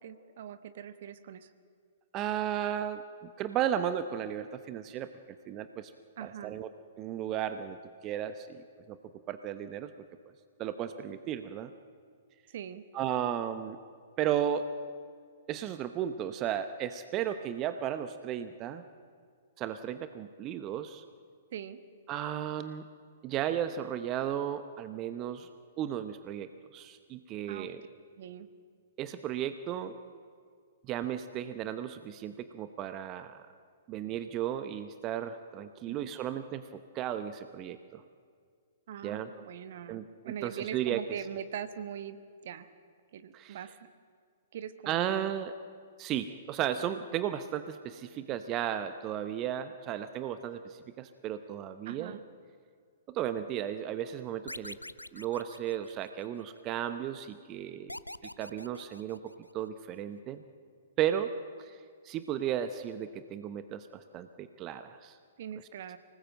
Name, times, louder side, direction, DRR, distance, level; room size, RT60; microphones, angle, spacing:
voice 1, 0.0-1.5 6.2-6.6 12.5-12.8 21.5-21.8 27.5-27.7 28.2-28.5 35.8-36.1 38.9-42.2 42.4-42.7 43.1-43.7 44.5-45.3 51.9-52.2 65.4-66.0, right 9 dB, 50° right, 13 dB, 1.1 m, -42 dB
voice 2, 2.1-5.1 5.5-5.9 6.2-6.7 7.0-7.8 8.0-9.0 9.3-9.9 10.6-11.7 12.9-13.8 14.2-14.7 15.5-18.8 19.6-21.0 22.1-22.8 23.2-25.5 25.8-27.8 29.0-30.0 30.9-33.4 33.9-36.7 36.9-38.0 39.0-39.3 39.9-41.0 43.3-43.6 44.9-45.5 46.0-52.2 53.1-54.8 55.1-58.0 58.4-59.2 59.5-60.4 61.0-61.3 61.6-61.8 62.0-65.2, right 10 dB, 30° right, 11 dB, 0.9 m, -34 dB
sound 1, 54.5-56.4 57.9-59.7, left 1 dB, 90° left, 0.5 m, -45 dB
25.0 x 19.0 x 7.7 m, 2.1 s
figure-of-eight pair, 110°, 0 cm